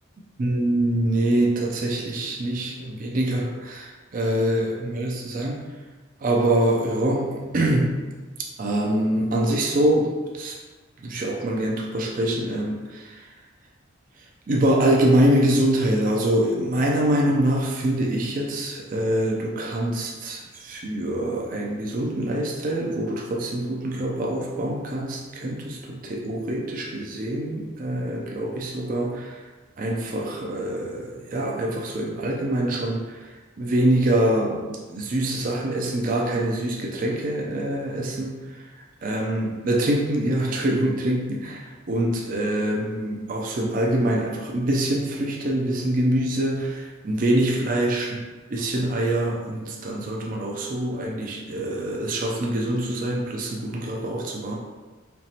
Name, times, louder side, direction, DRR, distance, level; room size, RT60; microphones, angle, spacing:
voice 1, 0.4-5.7 6.2-8.0 8.6-10.6 11.0-13.3 14.5-29.4 29.8-33.3 33.6-38.7 39.0-48.2 48.5-54.6, right 1 dB, 45° right, -1 dB, 0.5 m, -24 dB
4.5 x 3.0 x 2.8 m, 1.3 s
head